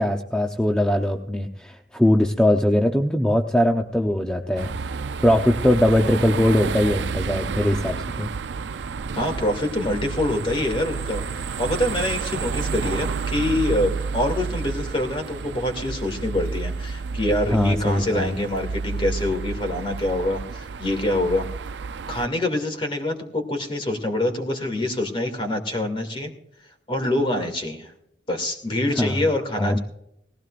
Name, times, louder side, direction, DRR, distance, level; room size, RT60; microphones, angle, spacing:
voice 1, 0.0-4.7 5.2-8.3 17.5-18.3 29.0-29.2 29.6-29.8, left 1 dB, 5° left, 2 dB, 0.7 m, -21 dB
sound 1, 4.6-22.3, right 5 dB, 70° right, 0.5 m, -30 dB
voice 2, 9.1-11.2 11.6-21.5 22.1-26.3 26.9-27.9 28.3-29.8, left 1 dB, 30° left, 5 dB, 2.4 m, -25 dB
18.5 x 15.5 x 2.5 m, 0.76 s
head